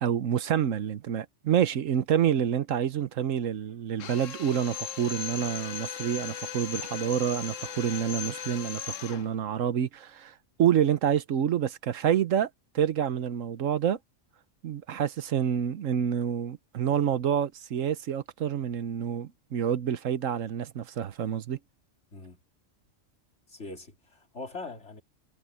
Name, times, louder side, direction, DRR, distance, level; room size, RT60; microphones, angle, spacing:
voice 1, 0.0-10.3 10.6-12.5 12.7-14.0 14.6-21.6, right 9 dB, 80° right, 1.2 m, -28 dB
Drill, 4.0-9.3, left 8 dB, 75° left, 1.2 m, -38 dB
voice 2, 23.5-25.0, left 3 dB, 60° left, 3.5 m, -42 dB
omnidirectional pair, 1.3 m